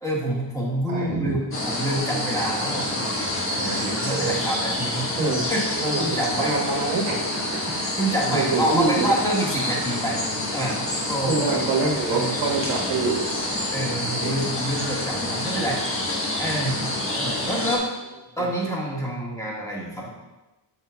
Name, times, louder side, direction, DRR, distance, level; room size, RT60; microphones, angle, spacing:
voice 1, 0.0-5.1 5.5-5.6 6.0-6.6 7.6-10.8 11.1-11.4 12.1-12.4 13.7-16.1 16.4-16.8 17.1-17.9 18.4-20.1, right 1 dB, 5° left, -5 dB, 1.7 m, -27 dB
voice 2, 0.9-1.3 4.1-4.3 5.2-5.4 5.7-7.6 8.3-9.1 11.3-13.2 14.2-14.3, right 3 dB, 85° right, -3 dB, 1.6 m, -25 dB
sound 1, 1.5-17.8, left 1 dB, 25° left, 1.3 m, -28 dB
7.3 x 5.7 x 2.3 m, 1.1 s
cardioid pair, 115°, 48 cm